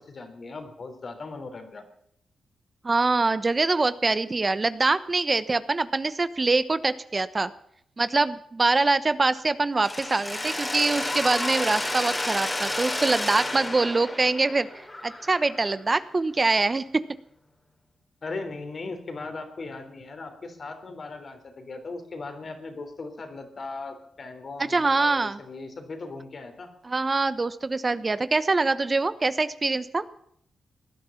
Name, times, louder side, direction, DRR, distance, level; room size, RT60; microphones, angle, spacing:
voice 1, 0.0-1.8 18.2-26.7, left 3 dB, 55° left, 6 dB, 3.7 m, -38 dB
voice 2, 2.8-7.5 8.0-14.7 15.0-17.0 24.6-25.4 26.8-30.0, right 3 dB, 35° right, 14 dB, 1.0 m, -24 dB
Mechanisms, 9.8-15.7, left 1 dB, 20° left, 3.1 m, -31 dB
18.0 x 10.5 x 7.2 m, 0.69 s
supercardioid pair, 50°, 0 cm